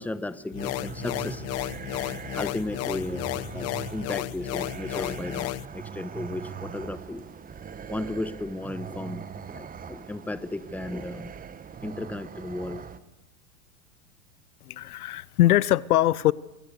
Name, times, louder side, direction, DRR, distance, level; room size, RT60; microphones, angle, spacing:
voice 1, 0.0-1.4 2.3-7.2 7.9-11.3 11.8-12.9, left 2 dB, 5° left, 1.1 m, -35 dB
sound 1, 0.5-5.7, left 18 dB, 35° left, 0.8 m, -33 dB
sound 2, 0.6-13.0, right 7 dB, 20° right, 1.5 m, -41 dB
voice 2, 14.6-16.3, left 14 dB, 80° left, 0.9 m, -22 dB
28.0 x 24.0 x 6.7 m
hypercardioid pair, 110°, 44 cm